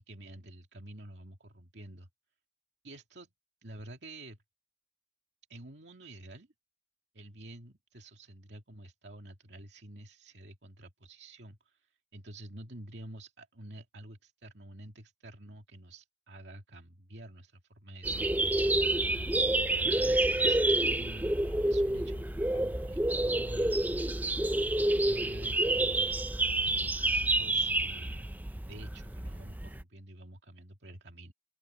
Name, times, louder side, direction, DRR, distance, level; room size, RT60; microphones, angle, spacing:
voice 1, 0.1-2.1 2.8-3.3 3.6-4.4 5.5-6.5 7.1-24.1 24.7-26.3 26.6-28.3 28.7-31.3, right 1 dB, 85° right, 2.4 m, -49 dB
sound 1, 18.0-29.8, right 2 dB, 10° right, 0.5 m, -28 dB
Musical instrument, 18.1-23.7, equal, 20° left, 3.3 m, -47 dB
open air
head